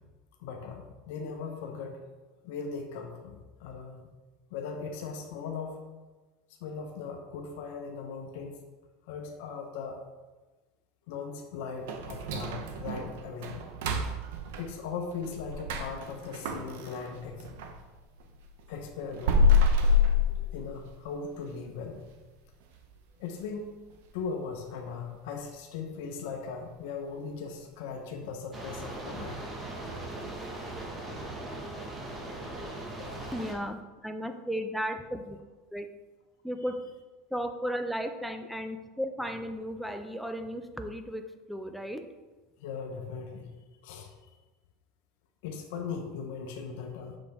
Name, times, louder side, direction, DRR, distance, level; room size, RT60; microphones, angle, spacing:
voice 1, 0.4-2.0 2.4-4.1 4.5-5.8 6.6-8.6 9.1-10.0 11.1-13.6 14.6-17.5 18.7-19.5 20.3-22.0 23.2-23.8 24.1-29.4 33.1-33.2 42.6-43.5 43.8-44.1 45.4-47.2, left 5 dB, 75° left, 3 dB, 0.8 m, -38 dB
sound 1, 11.9-17.8 18.2-21.0 21.4-21.5 22.0-22.1 22.6-22.9 23.2-23.3 23.9-24.0, left 4 dB, 75° right, 0.8 m, -28 dB
sound 2, 28.5-33.5, right 2 dB, 20° right, 1.2 m, -39 dB
voice 2, 33.3-35.4 35.7-35.9 36.4-36.9 37.3-42.1, equal, ahead, 7 dB, 0.5 m, -35 dB
6.3 x 5.0 x 3.5 m, 1.2 s
supercardioid pair, 130°, 0 cm